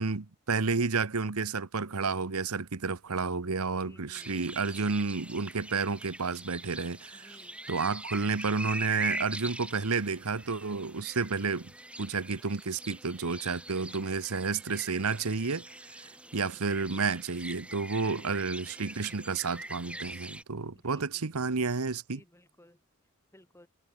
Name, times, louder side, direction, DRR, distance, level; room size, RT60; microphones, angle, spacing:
voice 1, 0.0-7.4 7.7-11.7 12.0-15.6 15.9-22.2, right 4 dB, 80° right, 1.1 m, -31 dB
voice 2, 3.8-4.3 7.1-7.6 14.6-15.0 18.1-18.4 20.8-21.3 22.1-22.8 23.3-23.7, left 1 dB, 10° left, 4.3 m, -58 dB
sound 1, 4.1-20.4, right 1 dB, 5° right, 6.2 m, -43 dB
head